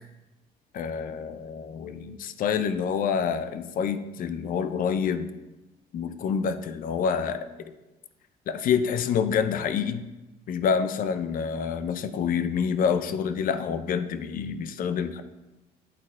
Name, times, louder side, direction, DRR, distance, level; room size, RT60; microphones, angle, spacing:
voice 1, 0.7-5.3 5.9-7.7 8.5-10.1 10.5-15.2, left 7 dB, 55° left, 10 dB, 0.6 m, -27 dB
11.0 x 4.1 x 3.7 m, 1.1 s
cardioid pair, 110°, 17 cm